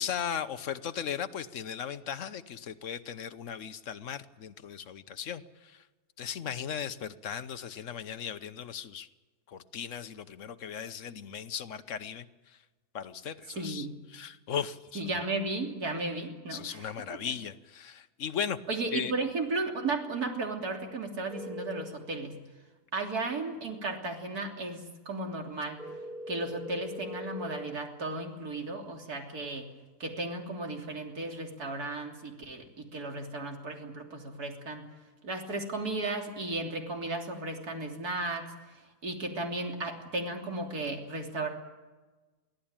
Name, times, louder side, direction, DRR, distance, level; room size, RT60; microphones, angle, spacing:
voice 1, 0.0-5.8 6.2-9.1 9.5-12.6 12.9-15.1 16.5-18.6 18.9-19.1, left 8 dB, 55° left, 12 dB, 1.2 m, -37 dB
voice 2, 13.6-14.0 15.0-16.9 18.7-22.4 22.9-25.8 26.3-29.7 30.0-34.9 35.2-38.5 39.0-41.5, right 2 dB, 70° right, 2 dB, 3.7 m, -35 dB
sound 1, 21.3-21.8 25.8-27.7, left 1 dB, ahead, 2.7 m, -41 dB
23.5 x 16.5 x 8.8 m, 1.2 s
omnidirectional pair, 1.7 m